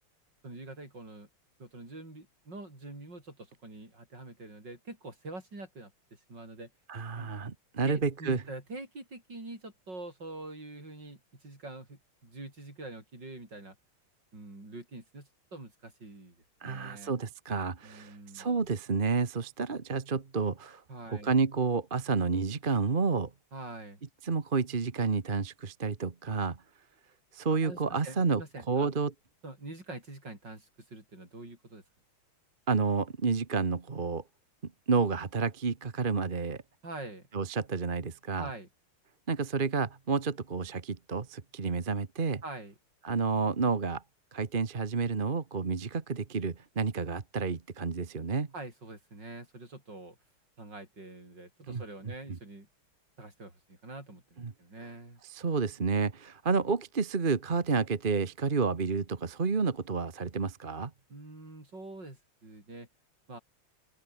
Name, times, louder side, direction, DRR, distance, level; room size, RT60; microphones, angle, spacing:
voice 1, 0.4-1.3 1.6-6.7 7.1-7.3 7.8-13.8 14.3-16.4 16.6-17.1 17.8-18.5 20.9-21.3 23.5-24.0 27.6-28.9 29.4-31.8 36.8-37.3 38.4-38.7 42.4-42.7 48.5-50.2 50.6-52.7 53.2-55.2 61.1-62.9 63.3-63.4, right 2 dB, 50° right, 8.2 m, -45 dB
voice 2, 6.9-8.4 16.6-20.8 21.2-23.3 24.2-26.6 27.3-28.4 28.7-29.1 32.7-34.2 34.9-36.6 37.3-38.5 39.3-42.4 43.0-44.0 44.3-48.5 51.7-51.8 54.4-54.5 55.3-60.9, right 4 dB, 30° right, 1.3 m, -30 dB
open air
omnidirectional pair, 2.4 m